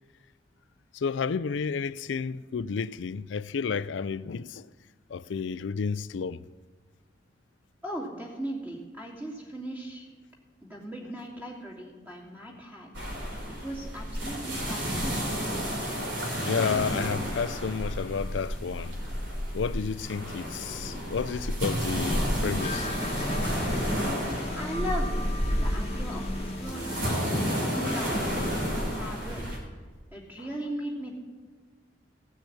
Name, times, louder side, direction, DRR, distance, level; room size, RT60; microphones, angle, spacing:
voice 1, 0.9-4.7 5.1-6.4 16.4-18.9 19.5-22.9, left 5 dB, 80° left, 0.4 m, -31 dB
voice 2, 7.8-10.1 10.6-12.9 13.6-15.4 24.5-25.2 25.5-29.6 30.1-31.1, equal, 10° right, 2.7 m, -38 dB
sound 1, 12.9-29.6, equal, 80° right, 3.3 m, -31 dB
sound 2, 22.6-28.7, left 2 dB, 35° left, 1.1 m, -38 dB
16.0 x 6.3 x 8.6 m
head